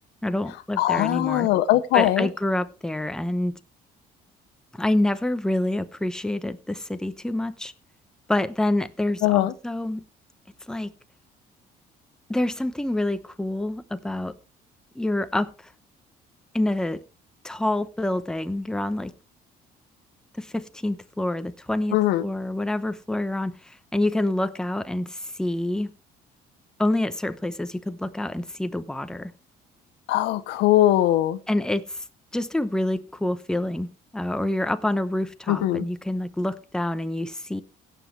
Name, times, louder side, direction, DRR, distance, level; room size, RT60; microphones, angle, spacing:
voice 1, 0.2-1.5 1.9-3.5 4.7-7.7 8.3-10.0 10.7-10.9 12.3-14.3 14.9-15.7 16.5-17.0 17.4-19.1 20.4-25.9 26.8-29.3 31.5-32.0 32.3-33.9 34.1-37.6, left 1 dB, 5° left, 0.8 m, -27 dB
voice 2, 0.8-2.3 9.2-9.5 21.9-22.2 30.1-31.4 35.5-35.8, left 14 dB, 90° left, 0.9 m, -21 dB
16.5 x 7.4 x 3.2 m
cardioid pair, 110°, 17 cm